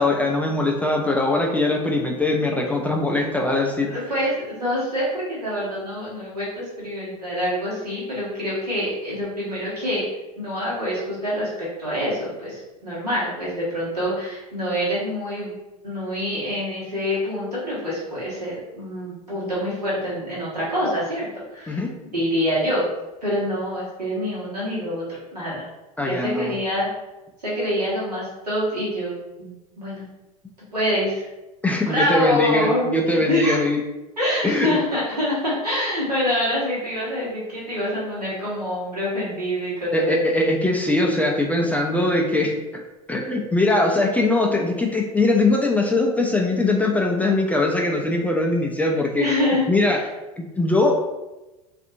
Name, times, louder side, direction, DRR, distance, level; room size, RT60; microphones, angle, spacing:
voice 1, 0.0-3.9 21.7-21.9 26.0-26.5 31.6-33.8 34.4-34.8 39.9-42.8 43.1-49.3 49.7-50.0 50.4-51.1, left 2 dB, 10° left, 0 dB, 0.3 m, -21 dB
voice 2, 3.9-10.1 10.4-15.6 15.8-21.8 22.1-22.9 23.2-25.6 26.1-26.9 27.4-30.0 30.7-31.3 31.9-33.6 34.2-40.2 49.2-50.0, equal, 90° right, -7 dB, 1.2 m, -26 dB
2.6 x 2.5 x 2.6 m, 1.0 s
figure-of-eight pair, 75°, 20 cm